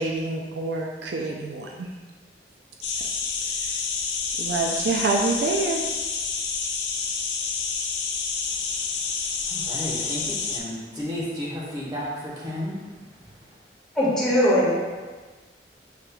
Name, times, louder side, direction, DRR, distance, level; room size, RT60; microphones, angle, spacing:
voice 1, 0.0-1.9 3.6-3.8 4.4-5.8, right 3 dB, 65° right, 1 dB, 0.4 m, -26 dB
sound 1, 2.8-10.6, left 5 dB, 75° left, 0.5 m, -28 dB
voice 2, 9.5-12.8, left 1 dB, 20° right, -6 dB, 1.0 m, -32 dB
voice 3, 13.9-14.8, equal, 5° left, -10 dB, 1.3 m, -20 dB
6.7 x 3.1 x 2.2 m, 1.4 s
head